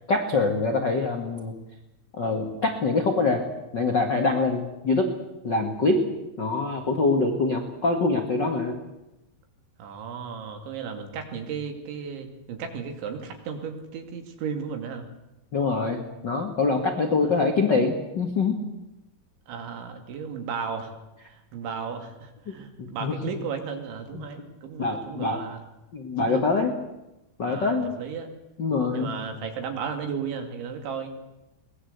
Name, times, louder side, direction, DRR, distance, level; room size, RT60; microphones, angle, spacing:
voice 1, 0.1-1.6 2.1-3.4 3.7-5.1 5.4-6.0 6.4-8.8 15.5-18.6 22.5-22.6 23.0-23.1 24.1-24.2 24.8-25.4 25.9-26.7 27.4-28.0 28.6-29.1, left 3 dB, 75° left, 4 dB, 1.0 m, -24 dB
voice 2, 9.8-15.1 17.2-17.3 19.5-20.9 21.2-25.6 26.2-26.4 27.4-28.3 28.9-31.1, right 6 dB, 75° right, 6 dB, 4.8 m, -34 dB
22.5 x 19.5 x 8.1 m, 0.94 s
omnidirectional pair, 5.4 m